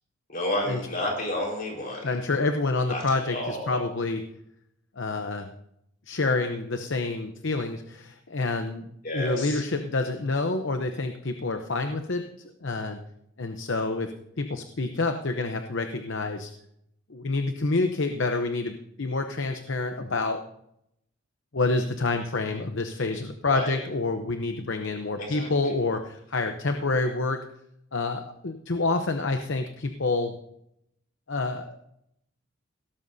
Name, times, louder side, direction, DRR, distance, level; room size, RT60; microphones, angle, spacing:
voice 1, 0.3-2.1 2.9-3.0 3.3-3.8 9.0-9.6 23.5-23.7 25.2-25.5, left 1 dB, 45° left, -1 dB, 4.6 m, -30 dB
voice 2, 2.0-4.3 5.0-5.5 6.1-8.9 9.1-13.0 13.4-16.5 17.1-20.4 21.5-27.4 27.9-30.4 31.3-31.8, left 3 dB, 60° left, 6 dB, 0.8 m, -28 dB
17.0 x 13.0 x 2.7 m, 0.77 s
head